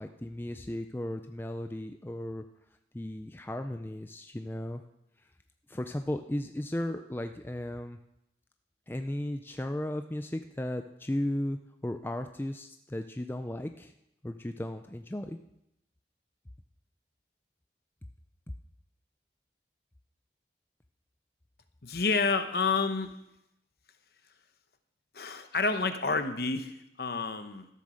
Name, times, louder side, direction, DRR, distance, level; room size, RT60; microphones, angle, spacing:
voice 1, 0.0-2.5 2.9-4.8 5.7-8.0 8.9-13.9 14.2-15.4, left 1 dB, 10° left, 7 dB, 0.4 m, -35 dB
voice 2, 21.8-23.2 25.1-27.7, left 4 dB, 55° left, 9 dB, 1.0 m, -29 dB
13.5 x 8.0 x 6.4 m, 0.82 s
head